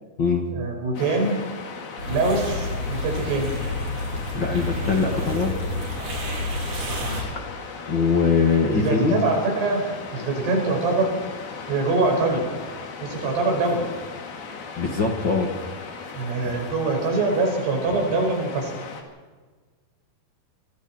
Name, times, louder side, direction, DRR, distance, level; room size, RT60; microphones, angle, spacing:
voice 1, 0.5-1.4 2.1-3.5 7.0-7.3 8.7-9.8 10.1-11.1 11.7-12.5 13.0-13.9 16.1-18.7, right 3 dB, 85° right, 1 dB, 7.3 m, -24 dB
Waves surf, 0.9-19.0, left 5 dB, 65° left, 4.1 m, -37 dB
sound 1, 2.0-7.2, left 2 dB, 50° right, 5.8 m, -30 dB
voice 2, 4.3-5.6 7.0-7.3 7.9-9.1 14.8-15.7, left 4 dB, 40° left, 2 dB, 2.0 m, -22 dB
25.5 x 24.0 x 4.4 m, 1.4 s
omnidirectional pair, 4.7 m